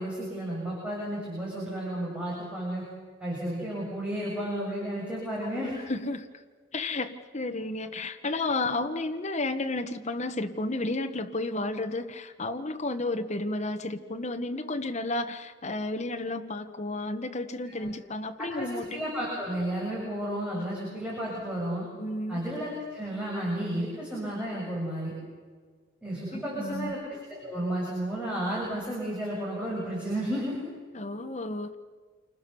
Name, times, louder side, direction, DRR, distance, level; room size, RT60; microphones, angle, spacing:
voice 1, 0.0-2.8 3.2-5.7 8.3-8.4 17.7-17.9 18.5-21.9 22.3-25.1 26.0-30.6, right 1 dB, 5° right, -6 dB, 7.7 m, -32 dB
voice 2, 5.6-6.4 6.7-19.0 22.0-22.4 26.3-26.9 30.9-31.7, left 2 dB, 35° left, 6 dB, 1.3 m, -32 dB
28.5 x 26.0 x 7.1 m, 1.5 s
head